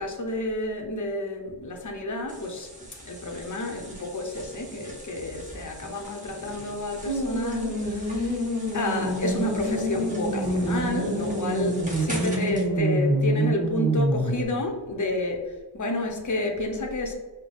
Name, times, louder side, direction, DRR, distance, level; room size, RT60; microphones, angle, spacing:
voice 1, 0.0-8.4 8.7-17.1, left 2 dB, 45° left, 2 dB, 0.9 m, -30 dB
sound 1, 2.3-12.7, equal, 20° right, 1.4 m, -40 dB
sound 2, 7.0-14.4, right 1 dB, 35° right, 1.2 m, -26 dB
5.3 x 2.2 x 3.3 m, 1.3 s
cardioid pair, 40°, 42 cm